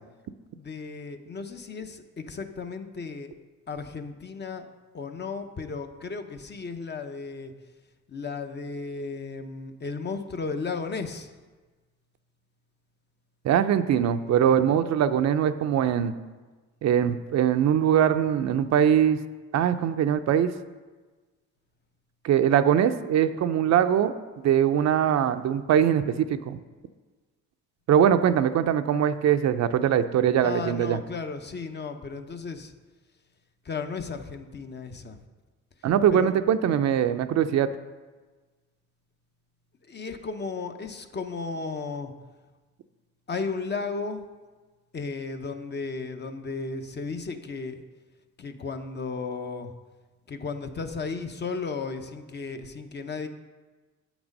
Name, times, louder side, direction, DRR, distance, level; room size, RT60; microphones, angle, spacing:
voice 1, 0.6-3.3 3.7-4.7 4.9-7.5 8.1-11.3 30.4-32.7 33.6-35.2 36.1-36.3 39.9-42.1 43.3-44.2 44.9-47.8 48.4-49.7 50.3-53.3, left 4 dB, 35° left, 7 dB, 0.7 m, -34 dB
voice 2, 13.4-16.1 16.8-19.2 19.5-20.5 22.2-24.1 24.4-26.6 27.9-31.0 35.8-37.7, right 9 dB, 60° right, 10 dB, 0.5 m, -22 dB
8.0 x 6.1 x 5.2 m, 1.3 s
cardioid pair, 90°, 30 cm